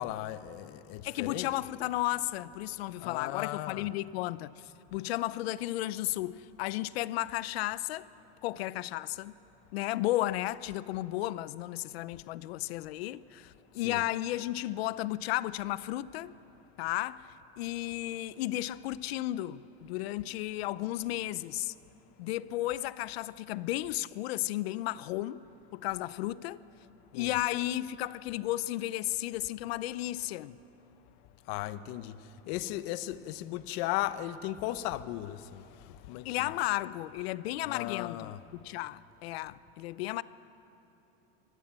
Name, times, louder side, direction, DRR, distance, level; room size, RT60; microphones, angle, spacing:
voice 1, 0.0-1.6 3.0-3.9 13.8-14.0 27.1-27.4 31.5-32.2 32.5-36.5 37.6-38.4, left 14 dB, 65° left, 1.1 m, -36 dB
voice 2, 1.0-8.1 8.4-9.4 9.7-16.3 16.8-17.3 17.6-21.7 22.2-25.4 25.7-26.6 27.1-30.6 36.2-38.3 38.6-40.2, left 16 dB, 85° left, 0.8 m, -34 dB
26.0 x 19.5 x 7.6 m
supercardioid pair, 140°, 30 cm